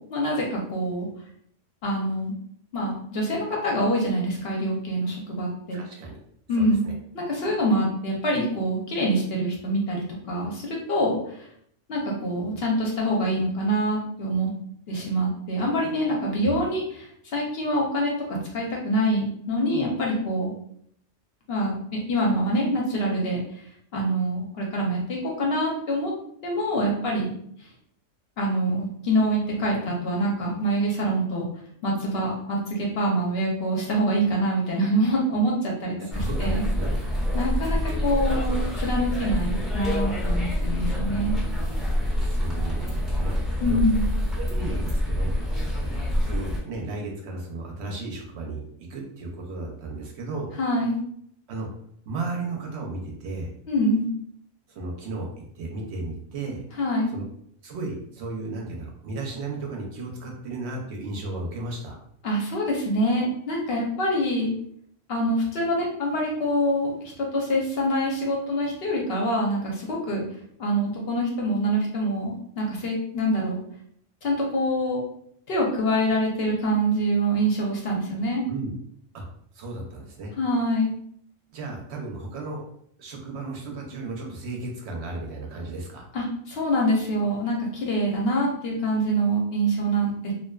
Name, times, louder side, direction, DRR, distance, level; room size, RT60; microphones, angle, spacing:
voice 1, 0.1-1.1 1.8-2.3 2.7-5.8 6.5-6.8 7.1-11.5 11.9-14.5 14.9-20.5 21.5-23.4 23.9-26.1 26.4-27.3 28.4-31.5 31.8-36.6 37.3-41.4 43.6-44.0 50.6-51.0 53.7-54.1 56.8-57.1 62.2-64.5 65.1-70.2 70.6-73.6 74.2-75.0 75.5-78.4 80.4-80.9 86.1-90.3, equal, 60° left, -2 dB, 0.7 m, -25 dB
voice 2, 5.7-6.2 6.6-6.9 16.4-16.6 36.0-36.9 42.2-43.8 44.4-45.4 46.2-50.5 51.5-51.7 52.1-53.5 54.7-56.6 57.1-57.2 57.6-62.0 78.5-78.7 79.1-79.2 79.5-80.3 81.5-82.7 83.0-86.1, right 2 dB, 70° right, 0 dB, 0.8 m, -34 dB
sound 1, 36.1-46.6, equal, ahead, 0.4 m, -26 dB
2.5 x 2.2 x 2.2 m, 0.67 s
omnidirectional pair, 1.3 m